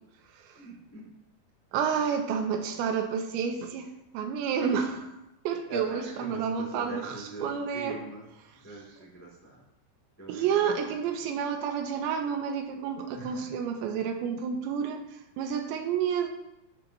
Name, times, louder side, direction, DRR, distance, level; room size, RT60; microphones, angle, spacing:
voice 1, 0.5-1.0 5.7-8.2 8.6-9.6 10.2-10.9 13.1-13.5, right 2 dB, 5° left, -3 dB, 1.5 m, -42 dB
voice 2, 1.7-5.1 5.4-7.2 7.4-8.0 10.3-15.0 15.4-16.3, right 7 dB, 85° right, 5 dB, 3.2 m, -30 dB
16.5 x 7.7 x 3.0 m, 0.92 s
omnidirectional pair, 5.1 m